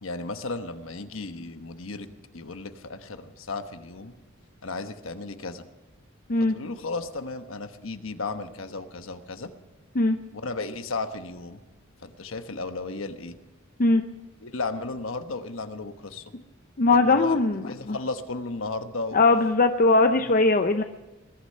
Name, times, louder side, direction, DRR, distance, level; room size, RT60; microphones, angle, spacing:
voice 1, 0.0-4.1 4.6-5.6 6.5-9.5 10.3-11.6 12.0-13.4 14.4-16.3 16.9-17.4 17.6-19.2 20.2-20.3, left 3 dB, 70° left, 8 dB, 1.2 m, -34 dB
voice 2, 16.8-18.0 19.1-20.8, left 3 dB, 45° left, 7 dB, 0.7 m, -20 dB
21.5 x 12.0 x 5.6 m, 1.2 s
head